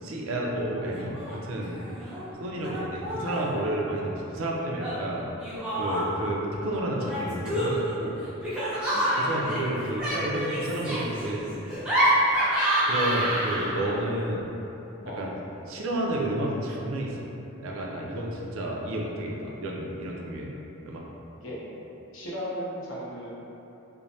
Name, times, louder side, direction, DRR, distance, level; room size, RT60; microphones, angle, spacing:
voice 1, 0.0-1.8 2.4-5.2 5.8-8.2 9.1-11.8 12.9-14.4 15.2-15.3 15.7-17.3 17.6-20.5 20.9-21.0, right 1 dB, 70° right, -2 dB, 0.4 m, -31 dB
Laughter, 0.9-1.3 1.6-2.2 2.6-3.5 4.8-6.3 7.0-13.9, right 1 dB, 5° right, 0.5 m, -28 dB
voice 2, 22.1-23.3, equal, 65° left, -7 dB, 0.6 m, -38 dB
3.0 x 2.1 x 2.6 m, 3.0 s
head